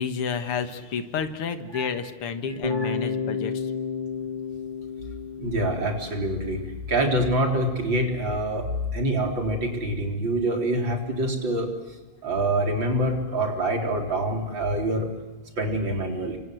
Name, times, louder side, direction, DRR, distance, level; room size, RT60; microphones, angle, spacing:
voice 1, 0.0-3.7, left 6 dB, 80° left, 9 dB, 2.6 m, -30 dB
voice 2, 2.5-3.0 5.4-6.6 6.9-11.7 12.2-15.1 15.6-16.4, right 1 dB, 55° right, 3 dB, 4.7 m, -26 dB
Bass guitar, 2.6-6.7, left 5 dB, 20° left, 2.3 m, -31 dB
29.5 x 25.5 x 7.9 m, 1.2 s
omnidirectional pair, 2.4 m